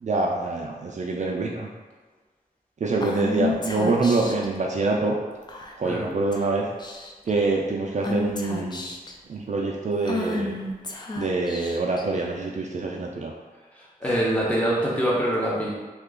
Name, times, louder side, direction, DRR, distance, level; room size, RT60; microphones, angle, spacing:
voice 1, 0.0-1.7 2.8-5.2 5.8-6.7 7.3-8.8 9.3-10.5 11.2-13.3, right 3 dB, 50° right, -1 dB, 0.4 m, -25 dB
Female speech woman speaking / Whispering, 3.0-4.5 5.5-5.9 6.3-6.5 6.8-7.3 8.0-9.1 10.0-12.0, left 3 dB, 25° left, 0.4 m, -30 dB
voice 2, 14.0-15.7, right 1 dB, 10° left, -6 dB, 0.9 m, -24 dB
2.8 x 2.4 x 3.6 m, 1.4 s
wide cardioid pair, 95°, 16 cm